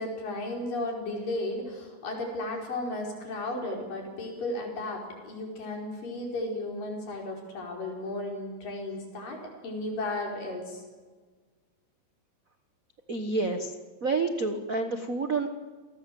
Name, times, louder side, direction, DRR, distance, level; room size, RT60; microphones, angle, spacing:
voice 1, 0.0-10.8, left 2 dB, 85° left, 1 dB, 6.5 m, -34 dB
voice 2, 13.1-13.8 14.0-15.5, right 3 dB, 75° right, 7 dB, 0.7 m, -28 dB
28.0 x 19.5 x 7.8 m, 1.4 s
omnidirectional pair, 3.8 m